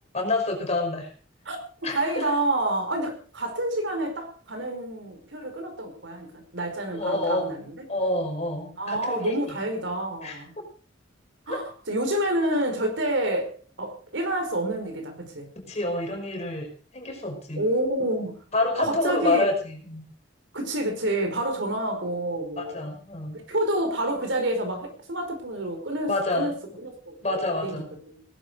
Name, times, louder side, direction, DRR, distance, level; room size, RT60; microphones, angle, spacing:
voice 1, 0.1-1.1 1.8-2.3 6.9-7.6 7.9-9.3 10.2-10.4 11.5-11.6 15.7-16.7 16.9-17.6 18.5-20.1 22.6-23.4 26.1-26.5 27.2-27.9, left 2 dB, 35° left, 2 dB, 5.5 m, -27 dB
voice 2, 1.9-7.8 8.8-10.5 11.5-15.5 17.5-18.4 18.8-19.5 20.5-22.9 23.3-28.2, right 1 dB, 70° right, 5 dB, 5.0 m, -28 dB
18.5 x 11.5 x 5.2 m, 0.42 s
head